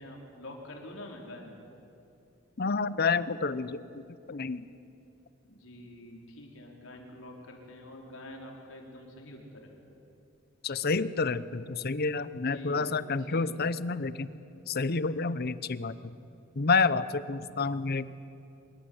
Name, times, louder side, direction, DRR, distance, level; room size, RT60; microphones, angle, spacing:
voice 1, 0.0-1.6 5.5-9.7 12.3-12.8 13.2-13.5, left 1 dB, 80° left, 0 dB, 4.5 m, -46 dB
voice 2, 2.6-3.8 4.3-4.7 10.6-14.3 14.7-15.9 16.6-18.1, left 4 dB, 50° left, 16 dB, 0.8 m, -29 dB
25.0 x 22.0 x 8.0 m, 2.7 s
head